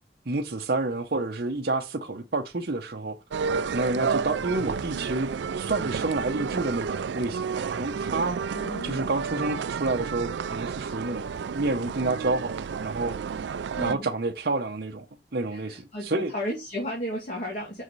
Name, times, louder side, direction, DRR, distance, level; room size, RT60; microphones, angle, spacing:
voice 1, 0.3-3.2 3.7-8.4 8.8-13.5 13.8-15.1 15.3-16.3, right 2 dB, 60° right, 0.8 m, -29 dB
sound 1, 3.3-13.9, right 6 dB, 80° right, 0.4 m, -31 dB
voice 2, 8.5-9.1 13.8-14.1 15.5-17.8, equal, 45° left, 2.4 m, -34 dB
6.4 x 4.9 x 4.0 m
head